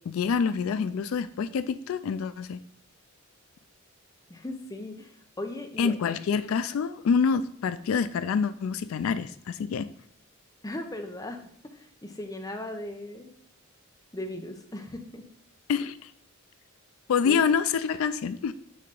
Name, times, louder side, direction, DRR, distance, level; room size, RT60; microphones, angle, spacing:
voice 1, 0.1-2.6 5.8-9.9 15.7-16.1 17.1-18.5, left 6 dB, 85° left, 13 dB, 0.3 m, -26 dB
voice 2, 4.3-5.1 5.4-6.0 10.6-11.4 11.7-13.3 14.1-15.2 17.2-17.4, left 1 dB, 20° left, 5 dB, 0.7 m, -37 dB
6.4 x 2.9 x 5.3 m, 0.68 s
head